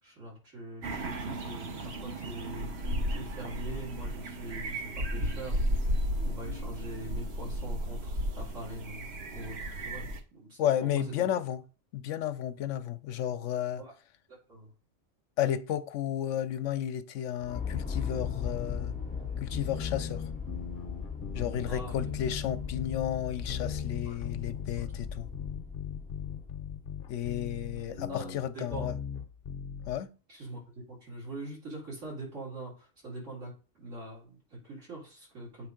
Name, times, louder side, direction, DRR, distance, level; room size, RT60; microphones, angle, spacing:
voice 1, 0.0-5.9 6.2-9.1 9.3-11.1 13.8-13.9 14.3-14.7 21.7-22.0 24.1-24.2 24.8-24.9 27.9-28.9 30.3-33.5 33.8-35.7, right 1 dB, 80° right, 4.3 m, -43 dB
Bike passing-by, 0.8-10.2, equal, 60° right, 1.2 m, -34 dB
voice 2, 10.6-11.6 11.9-13.8 15.4-18.9 19.4-20.2 21.3-25.3 27.1-28.9 29.9-30.1, left 10 dB, 85° left, 0.9 m, -32 dB
sound 1, 17.4-27.0, left 6 dB, 10° left, 0.5 m, -38 dB
sound 2, 18.2-30.0, left 8 dB, 55° left, 0.9 m, -39 dB
8.1 x 3.3 x 5.0 m
omnidirectional pair, 1.3 m